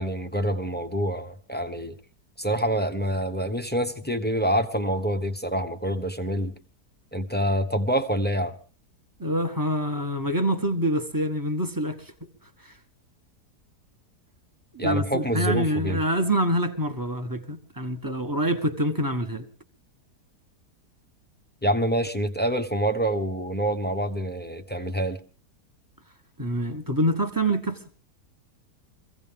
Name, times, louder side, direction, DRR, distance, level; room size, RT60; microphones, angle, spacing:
voice 1, 0.0-2.0 2.4-6.5 7.1-8.5 14.8-16.0 21.6-25.2, equal, 10° left, 0.9 m, -26 dB
voice 2, 9.2-12.1 12.6-12.7 14.7-19.5 26.4-27.8, right 1 dB, 15° right, 1.1 m, -26 dB
24.0 x 16.0 x 3.6 m
omnidirectional pair, 1.8 m